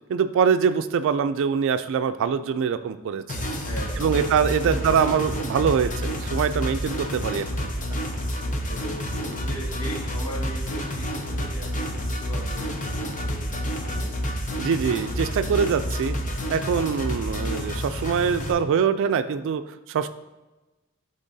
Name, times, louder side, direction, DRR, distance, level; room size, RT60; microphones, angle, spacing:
voice 1, 0.1-3.2 4.0-7.5 14.6-16.1 16.5-20.1, right 6 dB, 60° right, 11 dB, 0.3 m, -23 dB
sound 1, 3.3-18.5, equal, 35° left, 0.7 m, -29 dB
voice 2, 3.5-5.6 8.3-14.1, equal, 80° left, -5 dB, 1.5 m, -40 dB
11.0 x 3.8 x 2.7 m, 1.1 s
head